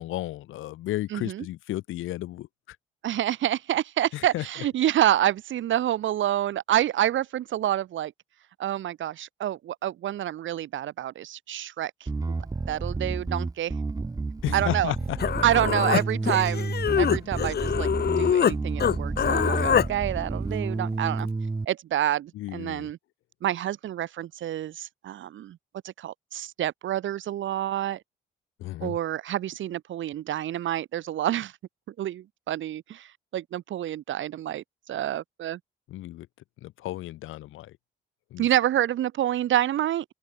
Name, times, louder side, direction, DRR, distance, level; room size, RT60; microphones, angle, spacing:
voice 1, 0.0-2.8 4.1-4.4 14.4-15.2 22.3-22.9 28.6-29.0 35.9-36.3 36.6-37.8 38.3-38.5, left 15 dB, 90° left, 3.5 m, -33 dB
voice 2, 1.1-1.4 3.0-8.1 8.6-12.1 12.7-13.7 14.5-14.9 15.4-17.9 18.2-21.3 21.7-23.0 23.4-25.6 25.8-28.0 28.8-31.5 31.9-35.6 38.4-40.1, right 12 dB, 75° right, 3.8 m, -28 dB
Bass guitar, 12.1-21.7, right 3 dB, 20° right, 1.0 m, -30 dB
Human voice, 14.8-14.9 15.2-18.6 18.8-19.9, left 8 dB, 55° left, 2.2 m, -24 dB
open air
cardioid pair, 90°, 20 cm